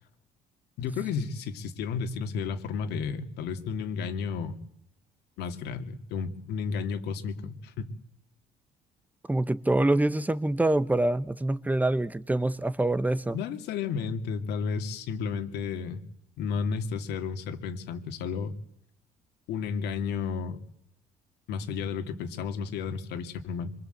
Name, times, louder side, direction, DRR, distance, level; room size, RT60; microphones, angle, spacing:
voice 1, 0.8-4.6 5.4-7.9 13.3-16.0 16.4-18.5 19.5-20.6 21.5-23.7, left 6 dB, 85° left, 2.5 m, -32 dB
voice 2, 9.3-13.4, right 1 dB, 10° right, 1.1 m, -25 dB
25.0 x 24.0 x 8.1 m
cardioid pair, 110°, 17 cm